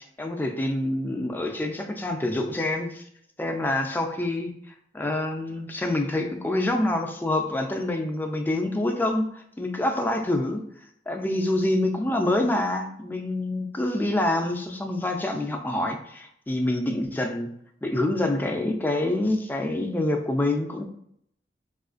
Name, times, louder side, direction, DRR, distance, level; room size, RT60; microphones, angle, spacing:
voice 1, 0.2-3.0 3.4-4.5 4.9-10.7 11.1-17.5 17.8-20.8, left 1 dB, 10° left, 3 dB, 0.3 m, -26 dB
4.4 x 2.4 x 2.4 m, 0.70 s
head